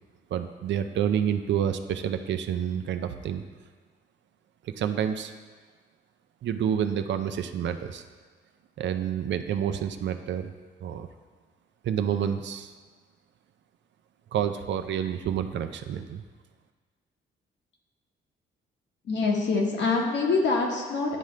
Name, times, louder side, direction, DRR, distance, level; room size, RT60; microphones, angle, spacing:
voice 1, 0.3-3.4 4.6-5.3 6.4-8.0 8.8-10.5 10.8-11.1 11.8-12.7 14.3-16.2, right 9 dB, 60° right, 8 dB, 0.5 m, -28 dB
voice 2, 19.0-21.2, left 3 dB, 60° left, 0 dB, 1.2 m, -25 dB
10.0 x 3.7 x 3.2 m, 1.5 s
cardioid pair, 85°, 21 cm